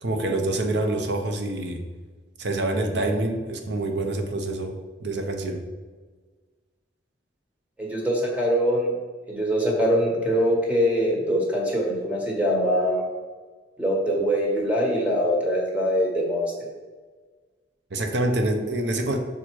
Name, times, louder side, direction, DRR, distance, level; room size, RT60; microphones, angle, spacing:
voice 1, 0.0-1.8 2.4-4.7 5.0-5.6 17.9-19.2, right 2 dB, 65° right, 5 dB, 0.8 m, -26 dB
voice 2, 7.8-8.9 9.3-13.0 13.8-16.4, equal, 10° right, -3 dB, 1.3 m, -23 dB
5.6 x 4.4 x 4.6 m, 1.4 s
head